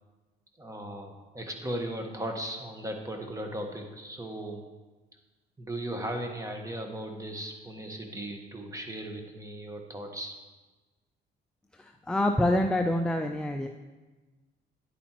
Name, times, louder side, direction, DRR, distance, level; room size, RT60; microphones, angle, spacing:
voice 1, 0.6-4.6 5.6-10.3, right 1 dB, 15° right, 3 dB, 1.3 m, -37 dB
voice 2, 11.7-13.7, left 1 dB, 5° left, 4 dB, 0.4 m, -26 dB
10.0 x 8.7 x 3.0 m, 1.2 s
cardioid pair, 90°, 20 cm